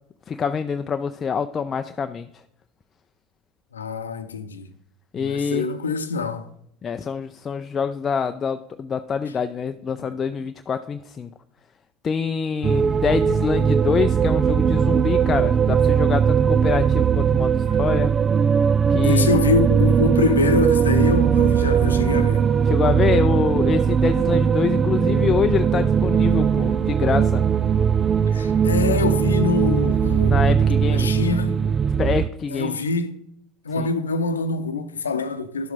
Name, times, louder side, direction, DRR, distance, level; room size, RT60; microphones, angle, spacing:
voice 1, 0.3-2.3 5.1-5.7 6.8-11.3 12.0-18.1 18.9-19.3 22.7-27.4 30.3-31.1 32.0-32.8 33.8-33.9, left 6 dB, 30° left, 0.5 m, -25 dB
voice 2, 3.7-4.7 5.2-6.5 10.0-10.1 17.6-17.8 19.0-22.5 28.3-30.5 30.9-31.7 32.5-33.2 33.6-35.7, left 4 dB, 80° left, 0.8 m, -25 dB
sound 1, 12.6-32.3, right 7 dB, 30° right, 0.3 m, -19 dB
11.5 x 7.3 x 4.0 m
figure-of-eight pair, 75°, 0 cm